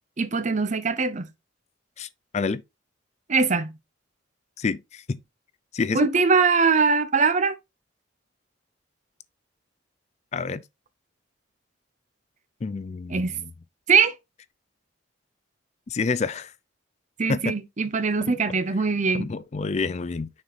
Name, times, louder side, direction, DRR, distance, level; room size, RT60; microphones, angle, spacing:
voice 1, 0.2-1.3 3.3-3.7 5.9-7.5 13.1-13.4 13.9-14.1 17.2-19.3, right 4 dB, 40° right, 0.8 m, -22 dB
voice 2, 4.6-5.2 5.7-6.1 10.3-10.6 12.6-13.2 15.9-16.5 17.3-17.5 18.3-18.4 19.1-20.3, left 4 dB, 35° left, 0.4 m, -28 dB
6.5 x 4.9 x 4.0 m
head